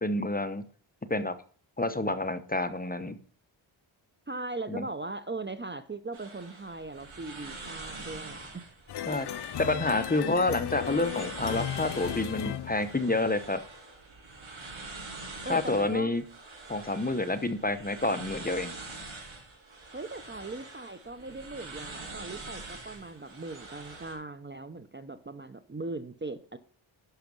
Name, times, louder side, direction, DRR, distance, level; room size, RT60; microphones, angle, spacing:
voice 1, 0.0-0.6 1.1-1.3 1.8-3.2 4.7-4.9 9.1-13.6 15.5-16.2 16.7-18.7, left 2 dB, 20° left, 10 dB, 0.8 m, -28 dB
voice 2, 4.3-8.5 15.4-16.1 19.9-26.6, right 2 dB, 25° right, 11 dB, 0.6 m, -39 dB
sound 1, 6.1-24.1, right 3 dB, 75° right, 6.2 m, -45 dB
sound 2, 8.9-13.5, left 10 dB, 60° left, 0.5 m, -36 dB
11.5 x 5.9 x 5.3 m, 0.44 s
wide cardioid pair, 105°, 48 cm